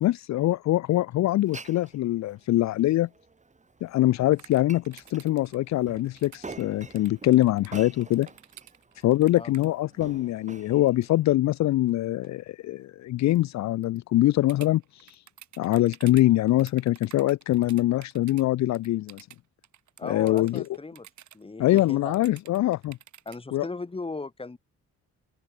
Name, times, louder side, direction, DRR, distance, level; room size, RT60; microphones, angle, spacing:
voice 1, 0.0-3.1 3.8-8.3 9.0-15.2 15.6-19.3 20.0-20.6 21.6-23.0 23.5-23.7, left 15 dB, 65° left, 0.5 m, -23 dB
Glass, 1.3-11.2, right 3 dB, 25° right, 3.9 m, -47 dB
sound 1, 4.4-9.7 10.9-11.0 11.7-11.9 12.2-12.3 13.2-13.4 13.8-14.0 14.5-18.4 18.7-21.4 21.8-23.4, right 11 dB, 70° right, 6.0 m, -50 dB
voice 2, 20.0-21.1 21.3-22.2 23.3-24.6, left 3 dB, 20° left, 2.1 m, -37 dB
cardioid pair, 90°, 30 cm